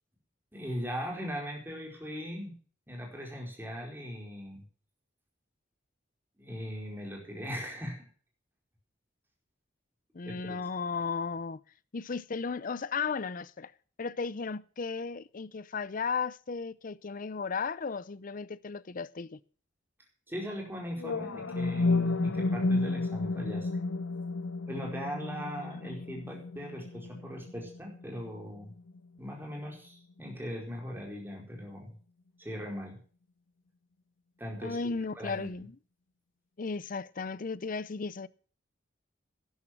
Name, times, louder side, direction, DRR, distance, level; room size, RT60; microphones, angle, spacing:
voice 1, 0.5-2.6 2.9-4.6 6.4-8.1 10.2-10.6 20.3-23.7 24.7-28.7 29.2-32.0 32.4-33.0 34.4-35.6, equal, 10° right, 4.5 m, -39 dB
voice 2, 10.1-11.6 11.9-13.7 14.0-19.4 25.9-26.0 34.6-35.8 36.6-38.3, left 5 dB, 45° left, 0.6 m, -35 dB
sound 1, 21.0-29.0, left 3 dB, 90° left, 0.9 m, -32 dB
12.0 x 11.0 x 6.0 m
head